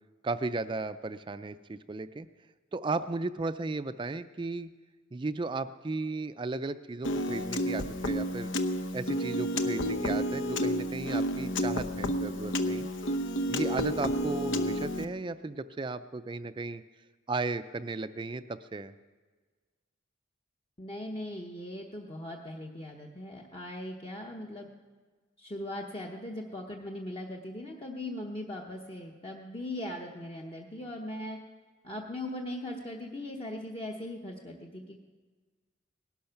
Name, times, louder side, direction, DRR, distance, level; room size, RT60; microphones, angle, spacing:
voice 1, 0.2-2.3 2.7-4.7 5.1-8.5 8.9-12.9 13.5-16.8 17.3-18.9, right 3 dB, 25° right, 12 dB, 0.4 m, -35 dB
Piano, 7.0-15.1, equal, 75° left, 0.9 m, -30 dB
voice 2, 20.8-24.7 25.4-31.4 31.8-35.0, left 1 dB, 30° left, 0 dB, 0.9 m, -39 dB
19.0 x 12.0 x 5.8 m, 1.4 s
head